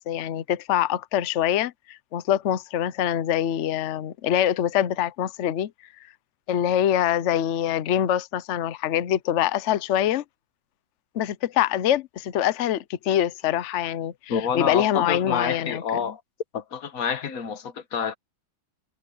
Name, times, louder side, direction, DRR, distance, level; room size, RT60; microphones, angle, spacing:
voice 1, 0.0-5.7 6.5-10.2 11.1-16.0, left 10 dB, 80° left, 0.6 m, -24 dB
voice 2, 14.3-16.2 16.5-18.2, left 7 dB, 50° left, 1.5 m, -28 dB
omnidirectional pair, 2.1 m